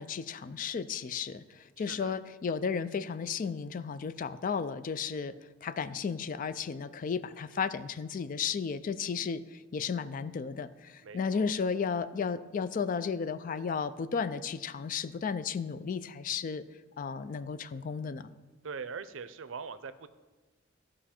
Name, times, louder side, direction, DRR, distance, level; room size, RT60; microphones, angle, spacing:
voice 1, 0.0-16.6 17.0-18.3, left 6 dB, 45° left, 14 dB, 0.3 m, -34 dB
voice 2, 1.8-2.2 11.0-11.5 18.6-20.1, right 5 dB, 75° right, 13 dB, 0.5 m, -42 dB
14.0 x 5.0 x 4.3 m, 1.3 s
head